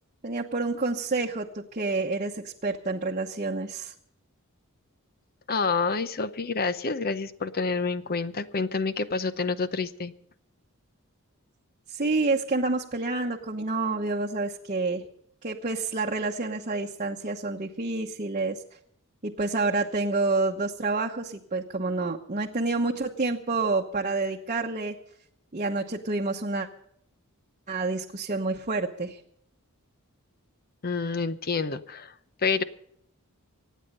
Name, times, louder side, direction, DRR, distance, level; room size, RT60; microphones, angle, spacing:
voice 1, 0.2-3.9 11.9-15.0 15.4-18.6 19.2-24.9 25.5-26.7 27.7-29.2, right 3 dB, 35° right, 0 dB, 1.0 m, -28 dB
voice 2, 5.5-10.1 30.8-32.6, left 4 dB, 45° left, 13 dB, 0.8 m, -28 dB
25.0 x 9.4 x 5.5 m, 0.73 s
head